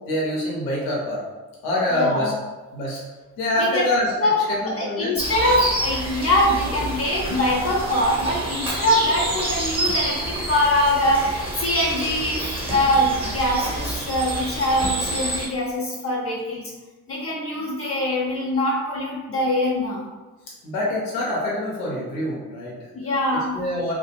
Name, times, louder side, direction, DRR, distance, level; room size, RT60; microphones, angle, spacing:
voice 1, 0.1-1.2 1.6-2.3 2.7-3.0 3.4-4.1 4.5-5.2 20.6-22.9 23.5-23.9, left 1 dB, 75° left, -5 dB, 0.8 m, -25 dB
voice 2, 1.9-2.3 3.6-3.8 4.2-4.4 4.6-16.7 17.1-20.0 22.9-23.6, left 1 dB, 35° left, -3 dB, 0.6 m, -23 dB
sound 1, 5.2-15.5, right 1 dB, 15° right, 0.9 m, -28 dB
2.3 x 2.1 x 2.9 m, 1.2 s
figure-of-eight pair, 45°, 41 cm